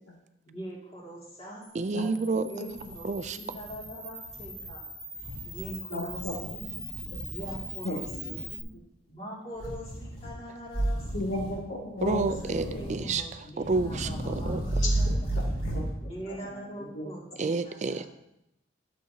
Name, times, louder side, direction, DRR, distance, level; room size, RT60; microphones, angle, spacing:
voice 1, 0.5-1.8 2.5-4.9 5.4-6.8 7.3-8.1 8.4-8.7 9.1-11.3 12.7-15.1 16.0-18.1, right 1 dB, 30° left, -5 dB, 2.4 m, -43 dB
Camera, 1.6-8.6, equal, 10° left, 1.5 m, -42 dB
voice 2, 1.7-2.5 3.0-3.6 12.0-14.7 17.4-18.1, right 4 dB, 40° right, 11 dB, 0.4 m, -30 dB
sound 1, 2.3-2.4 2.7-3.9 4.2-4.7 5.2-5.7 6.1-7.7 8.0-8.5 9.6-10.3 10.7-11.6 12.0-13.2 13.6-15.9, right 1 dB, 45° left, 3.4 m, -33 dB
voice 3, 5.9-6.5 7.1-7.2 7.8-8.4 11.1-13.5 14.8-14.9 15.7-15.9 16.3-17.1, left 1 dB, 70° left, -3 dB, 2.1 m, -35 dB
11.5 x 6.9 x 2.8 m, 0.84 s
head